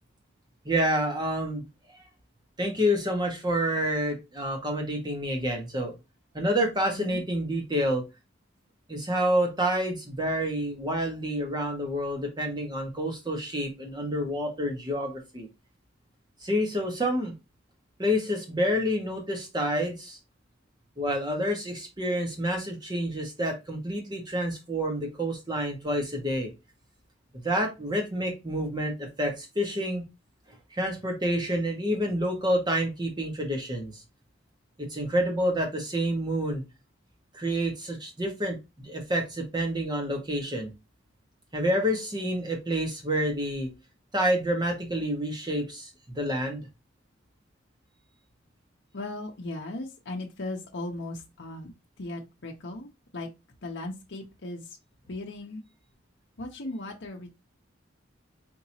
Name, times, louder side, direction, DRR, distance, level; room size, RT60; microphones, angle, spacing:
voice 1, 0.6-2.0 2.6-5.9 6.3-8.0 8.9-15.5 16.4-17.4 18.0-20.2 21.0-26.5 27.4-30.0 30.7-33.9 34.8-36.6 37.3-40.7 41.5-43.7 44.1-45.9 46.1-46.7, equal, 20° right, 2 dB, 1.3 m, -28 dB
voice 2, 6.9-7.2 48.9-53.3 53.6-54.8 55.1-55.6 56.4-57.3, left 2 dB, 65° left, 0 dB, 0.8 m, -37 dB
4.4 x 2.9 x 2.7 m, 0.24 s
head